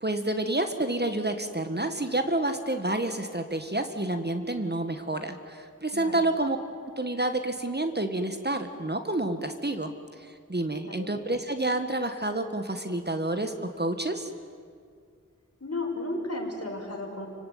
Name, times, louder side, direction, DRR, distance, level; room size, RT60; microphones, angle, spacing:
voice 1, 0.0-6.6 7.0-9.9 10.2-14.3, right 2 dB, 30° right, 7 dB, 1.7 m, -29 dB
voice 2, 15.6-17.3, left 2 dB, 50° left, 0 dB, 5.6 m, -33 dB
29.5 x 18.0 x 9.5 m, 2.2 s
wide cardioid pair, 40°, 31 cm